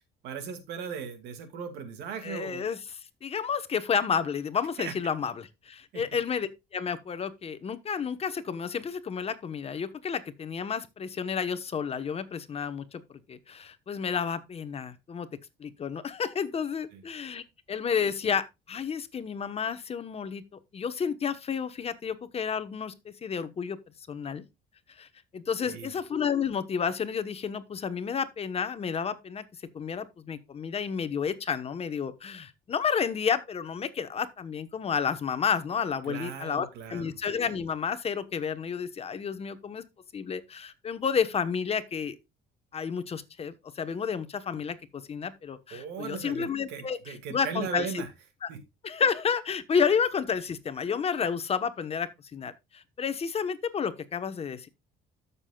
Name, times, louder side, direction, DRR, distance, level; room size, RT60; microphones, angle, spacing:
voice 1, 0.2-2.8 4.8-4.9 5.9-6.0 16.9-17.0 25.6-25.9 36.1-37.1 45.7-48.1 48.5-48.6, right 6 dB, 85° right, 2.3 m, -37 dB
voice 2, 2.2-15.3 15.6-20.4 20.7-23.8 24.1-24.4 24.9-25.1 25.3-29.4 29.7-39.8 40.1-42.2 42.7-48.0 48.4-48.5 48.8-54.7, left 6 dB, 35° left, 1.1 m, -31 dB
13.5 x 6.9 x 2.3 m
cardioid pair, 110°, 17 cm